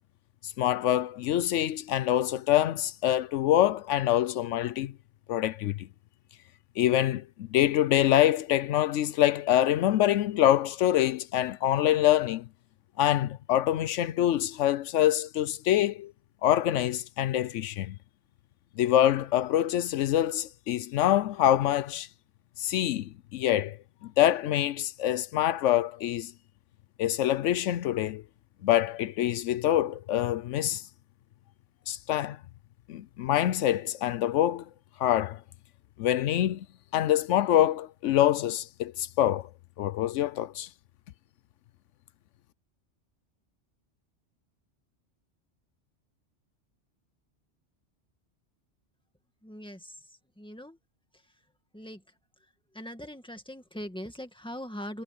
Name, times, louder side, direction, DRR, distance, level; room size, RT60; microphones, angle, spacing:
voice 1, 0.6-4.9 5.3-5.9 6.8-12.4 13.0-16.1 16.4-18.0 18.8-22.1 22.6-23.8 24.0-26.3 27.0-28.2 28.6-30.8 31.9-32.4 32.9-34.6 35.0-35.4 36.0-36.7 36.9-39.5 39.8-40.7, left 12 dB, 85° left, 0.9 m, -25 dB
voice 2, 49.4-50.0 50.4-50.8 51.7-52.0 52.7-55.0, equal, 5° left, 2.1 m, -41 dB
omnidirectional pair, 1.2 m